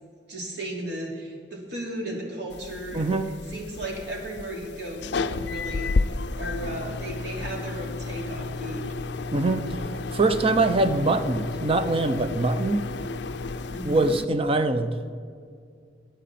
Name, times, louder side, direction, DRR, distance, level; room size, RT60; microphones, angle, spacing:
voice 1, 0.3-8.9 13.6-14.1, right 1 dB, 65° right, -2 dB, 3.0 m, -35 dB
sound 1, 2.5-14.2, left 3 dB, 65° left, 0.5 m, -32 dB
voice 2, 2.9-3.3 9.3-9.7 10.1-12.8 13.8-15.0, right 2 dB, 30° right, 10 dB, 0.6 m, -23 dB
21.5 x 9.2 x 4.3 m, 2.3 s
head